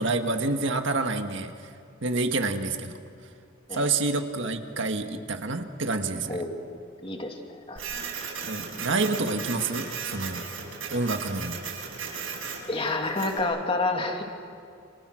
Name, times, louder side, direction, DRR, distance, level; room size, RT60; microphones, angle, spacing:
voice 1, 0.0-1.5 2.0-2.9 3.7-6.4 8.5-10.4 10.9-11.6, right 3 dB, 60° right, 5 dB, 1.8 m, -28 dB
voice 2, 6.3-6.6 7.0-7.8 12.7-14.2, left 2 dB, 25° left, 2 dB, 2.7 m, -29 dB
Printer, 7.8-13.4, right 5 dB, 80° right, 7.1 m, -36 dB
29.5 x 28.5 x 6.5 m, 2.4 s
head